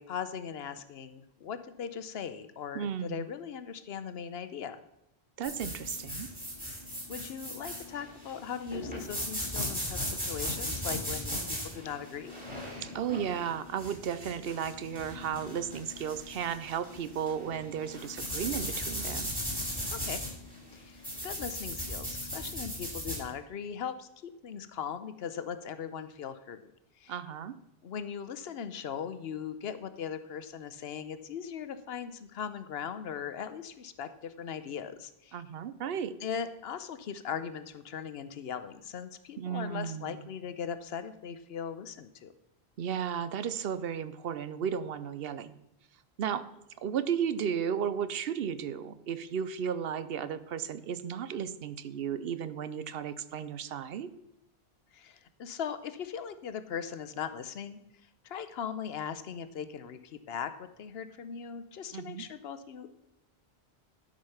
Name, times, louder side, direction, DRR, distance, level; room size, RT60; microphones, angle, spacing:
voice 1, 0.0-4.8 7.1-12.3 19.9-20.2 20.7-24.1 24.4-26.6 27.0-27.1 27.8-35.4 36.2-42.3 54.9-57.8 58.2-63.0, left 7 dB, 75° left, 12 dB, 0.9 m, -39 dB
voice 2, 2.7-3.3 5.4-6.3 12.8-19.3 27.1-27.5 35.3-36.2 39.4-40.2 42.8-45.5 46.2-46.4 46.8-54.1 61.9-62.2, right 8 dB, 70° right, 14 dB, 0.8 m, -34 dB
sound 1, 5.4-23.2, equal, 10° right, 3.7 m, -37 dB
12.0 x 5.2 x 5.7 m, 0.85 s
omnidirectional pair, 1.0 m